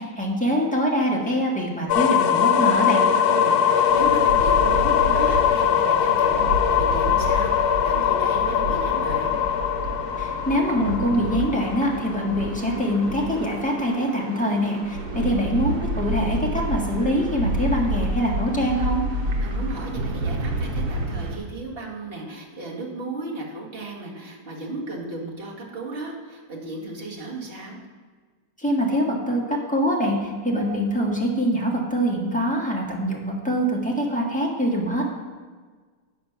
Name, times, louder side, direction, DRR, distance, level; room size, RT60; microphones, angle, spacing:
voice 1, 0.0-3.0 10.2-19.0 28.6-35.0, equal, 5° left, -2 dB, 1.4 m, -24 dB
sound 1, 1.9-13.7, left 8 dB, 75° left, 1.0 m, -21 dB
sound 2, 2.5-21.4, right 1 dB, 80° right, 1.6 m, -30 dB
voice 2, 3.3-9.4 15.1-15.3 19.4-27.8, right 2 dB, 35° right, -3 dB, 1.9 m, -35 dB
9.3 x 5.3 x 5.8 m, 1.5 s
omnidirectional pair, 1.7 m